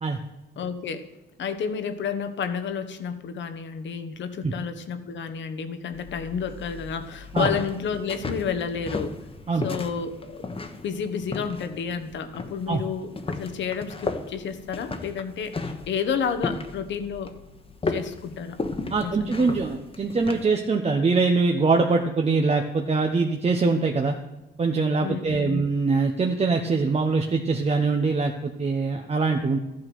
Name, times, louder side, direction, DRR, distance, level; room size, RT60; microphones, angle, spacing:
voice 1, 0.6-1.1 1.4-9.2 9.6-10.4 10.8-17.3 17.9-18.6 18.9-19.5 25.0-25.6, left 6 dB, 65° left, 9 dB, 1.3 m, -31 dB
sound 1, 5.9-20.5, left 3 dB, 30° left, 1.3 m, -35 dB
voice 2, 18.9-24.1 24.6-29.6, right 4 dB, 30° right, 3 dB, 1.1 m, -23 dB
13.5 x 8.7 x 6.2 m, 0.99 s
cardioid pair, 90°, 20 cm